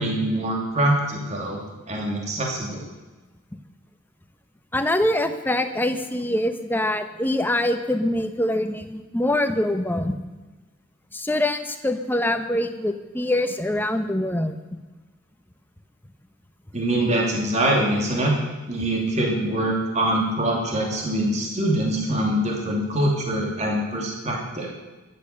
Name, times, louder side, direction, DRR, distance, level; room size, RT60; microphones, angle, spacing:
voice 1, 0.0-1.6 1.9-2.9 16.7-18.3 18.7-24.7, right 1 dB, 35° right, -1 dB, 2.8 m, -24 dB
voice 2, 4.7-10.1 11.1-14.6, left 1 dB, 10° left, 7 dB, 0.9 m, -24 dB
14.0 x 11.0 x 6.7 m, 1.2 s
head